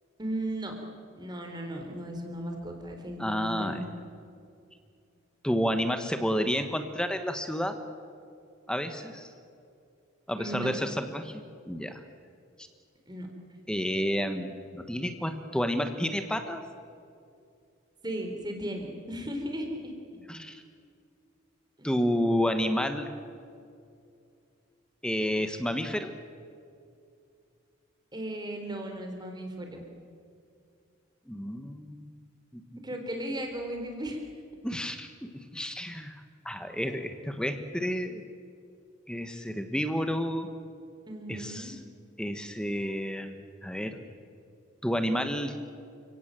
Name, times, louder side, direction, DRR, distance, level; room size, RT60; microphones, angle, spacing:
voice 1, 0.2-0.8 1.1-3.9 10.4-10.7 13.1-13.3 18.0-19.9 21.8-21.9 28.1-29.8 32.8-34.2 41.1-41.8, right 1 dB, 20° right, 3 dB, 3.7 m, -36 dB
voice 2, 3.2-3.8 5.4-7.8 8.7-9.3 10.3-12.0 13.7-16.6 20.3-20.6 21.8-23.1 25.0-26.1 31.3-32.1 32.5-32.6 34.6-36.2 36.4-38.2 39.1-40.5 41.3-41.8 42.2-44.0 44.8-45.5, equal, 5° left, 8 dB, 1.2 m, -30 dB
30.0 x 17.5 x 7.6 m, 2.4 s
head